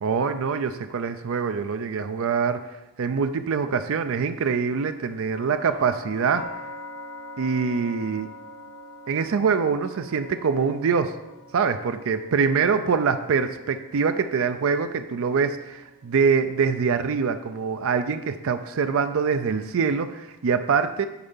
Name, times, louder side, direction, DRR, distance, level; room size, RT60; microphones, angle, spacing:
voice 1, 0.0-2.6 3.0-6.5 7.4-8.3 9.1-11.2 11.5-21.1, right 5 dB, 65° right, 9 dB, 0.4 m, -24 dB
sound 1, 5.3-19.2, left 1 dB, 85° left, 1.7 m, -45 dB
8.7 x 4.5 x 5.5 m, 1.0 s
head